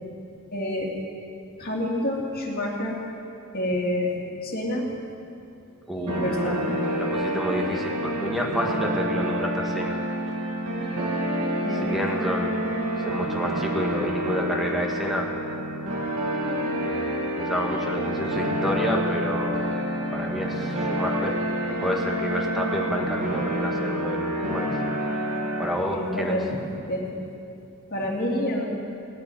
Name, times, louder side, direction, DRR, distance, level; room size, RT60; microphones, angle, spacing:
voice 1, 0.5-0.9 1.6-2.9 3.5-4.1 4.4-4.9 5.9-6.8 11.6-11.9 25.8-26.6 26.9-27.0 27.9-28.6, left 1 dB, 45° left, -4 dB, 2.9 m, -28 dB
voice 2, 5.9-6.5 6.9-10.0 11.7-12.7 13.0-15.3 16.7-19.6 20.1-21.4 21.7-24.7 25.6-26.4, equal, ahead, 0 dB, 1.7 m, -29 dB
sound 1, 6.1-25.7, equal, 85° right, 2.7 m, -28 dB
18.0 x 8.5 x 9.3 m, 2.8 s
head